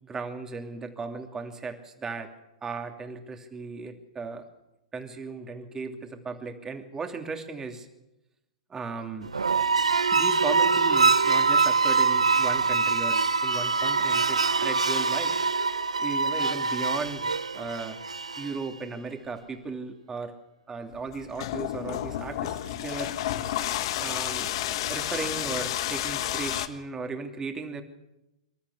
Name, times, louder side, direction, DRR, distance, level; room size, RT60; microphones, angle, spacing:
voice 1, 0.1-2.3 2.6-4.5 4.9-7.9 8.7-9.3 10.1-15.3 16.0-18.0 18.4-20.3 20.7-23.2 24.0-24.5 24.9-27.8, right 4 dB, 15° right, 5 dB, 2.8 m, -36 dB
sound 1, 9.2-18.6, right 4 dB, 90° right, 0.7 m, -24 dB
sound 2, 20.9-26.7, left 13 dB, 55° left, 1.4 m, -31 dB
26.5 x 13.5 x 8.4 m, 0.93 s
hypercardioid pair, 115°, 3 cm